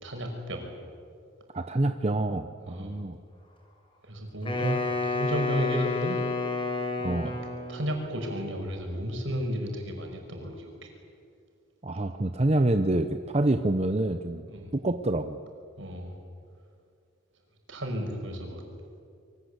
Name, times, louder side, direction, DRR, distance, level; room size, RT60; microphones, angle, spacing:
voice 1, 0.0-0.7 2.7-3.0 4.0-6.2 7.2-7.3 7.7-10.9 14.5-14.7 15.8-16.1 17.7-18.6, equal, 65° right, 3 dB, 5.6 m, -33 dB
voice 2, 1.5-3.2 4.6-4.8 7.0-7.4 11.8-14.4 14.7-15.4, right 1 dB, 30° right, 8 dB, 0.8 m, -27 dB
Wind instrument woodwind instrument, 4.4-7.9, left 3 dB, 25° left, 4.9 m, -30 dB
26.5 x 23.5 x 8.2 m, 2.3 s
head